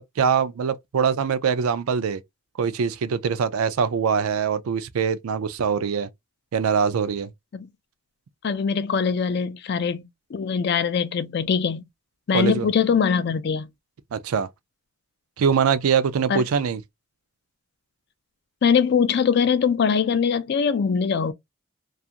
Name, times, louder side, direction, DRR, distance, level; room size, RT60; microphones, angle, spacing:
voice 1, 0.0-2.2 2.6-6.1 6.5-7.3 12.3-12.7 14.1-14.5 15.4-16.8, right 6 dB, 85° right, 0.4 m, -23 dB
voice 2, 8.4-11.8 12.3-13.7 16.3-16.4 18.6-21.3, left 6 dB, 50° left, 0.3 m, -22 dB
2.4 x 2.4 x 2.7 m
head